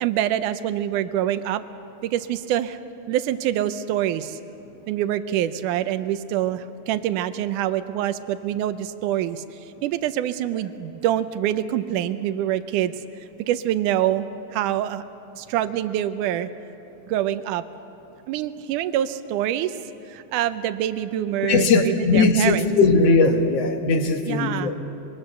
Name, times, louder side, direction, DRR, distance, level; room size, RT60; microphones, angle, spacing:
voice 1, 0.0-1.7 2.0-2.8 3.1-4.4 4.9-9.4 9.8-12.9 13.5-14.3 14.5-15.0 15.4-16.5 17.1-17.6 18.3-19.7 20.1-22.7 24.3-24.7, right 11 dB, 85° right, 12 dB, 2.2 m, -25 dB
voice 2, 21.4-24.8, left 3 dB, 60° left, 5 dB, 2.1 m, -19 dB
25.0 x 22.5 x 6.7 m, 2.9 s
omnidirectional pair, 3.6 m